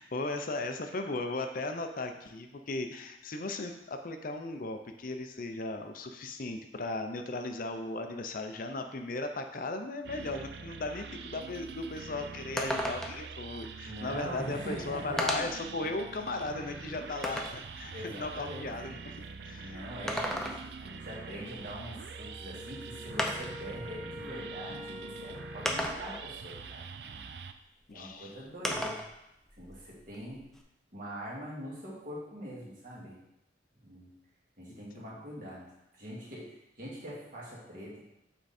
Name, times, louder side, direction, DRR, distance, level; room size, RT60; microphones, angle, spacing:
voice 1, 0.0-19.9 27.9-28.4 34.7-35.2, left 2 dB, 50° left, 6 dB, 0.6 m, -37 dB
sound 1, 10.0-27.5, right 5 dB, 65° right, 0.4 m, -45 dB
sound 2, 11.6-11.7 12.1-12.2 12.6-13.3 14.4-14.5 15.2-15.7 16.2-17.6 19.9-20.8 22.3-22.4 23.2-23.6 24.6-24.7 25.7-26.3 28.6-29.1 29.5-30.6, equal, 5° left, 0.5 m, -34 dB
voice 2, 13.9-15.4 17.3-17.4 17.9-19.0 19.6-27.3 27.9-29.0 29.6-30.5 30.9-33.2 33.8-34.1 34.6-35.7 36.0-38.0, equal, 50° right, -6 dB, 2.2 m, -43 dB
Wind instrument woodwind instrument, 22.1-26.5, left 1 dB, 15° right, 1.2 m, -46 dB
7.9 x 3.8 x 4.2 m, 0.84 s
head